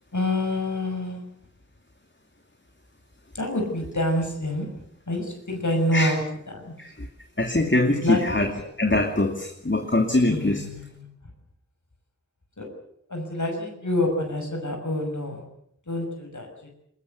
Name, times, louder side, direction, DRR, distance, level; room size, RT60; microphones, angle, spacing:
voice 1, 0.1-1.2 3.3-4.7 5.1-6.7 8.0-8.5 10.3-11.1 12.6-12.7 13.1-15.4 15.9-16.7, left 1 dB, 85° left, 3 dB, 6.1 m, -27 dB
voice 2, 7.4-8.5 8.8-10.6, left 2 dB, 40° left, 4 dB, 2.5 m, -22 dB
21.5 x 20.5 x 8.1 m, 0.72 s
wide cardioid pair, 45°, 29 cm